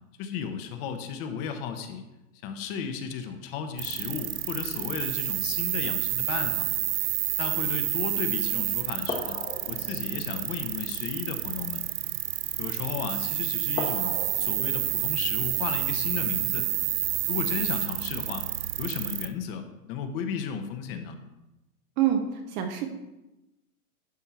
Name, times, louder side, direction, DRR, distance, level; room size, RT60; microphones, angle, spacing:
voice 1, 0.2-2.0 2.4-6.7 7.4-9.4 9.7-11.8 12.6-16.7 17.3-18.5 18.8-21.2, left 7 dB, 40° left, 7 dB, 1.0 m, -34 dB
sound 1, 3.8-19.3, right 15 dB, 60° right, 0.7 m, -29 dB
sound 2, 5.0-6.3 6.8-7.1 7.9-8.1 9.0-12.6 13.1-13.3 13.7-17.2 17.9-18.0, left 4 dB, 15° left, 1.1 m, -41 dB
voice 2, 22.0-22.9, right 10 dB, 25° right, 6 dB, 0.6 m, -26 dB
11.0 x 4.5 x 4.4 m, 1.0 s
hypercardioid pair, 135°, 45 cm